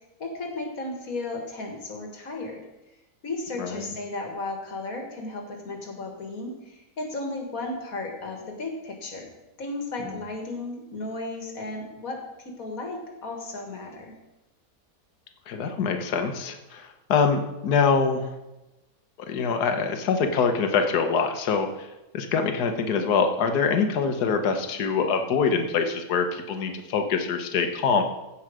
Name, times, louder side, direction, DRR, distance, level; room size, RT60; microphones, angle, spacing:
voice 1, 0.2-2.6 3.2-9.3 9.6-14.1, left 2 dB, 60° left, 2 dB, 1.9 m, -34 dB
voice 2, 15.5-18.3 19.3-21.7 22.1-28.0, left 5 dB, 75° left, 6 dB, 1.5 m, -24 dB
15.5 x 5.6 x 4.9 m, 1.0 s
omnidirectional pair, 1.7 m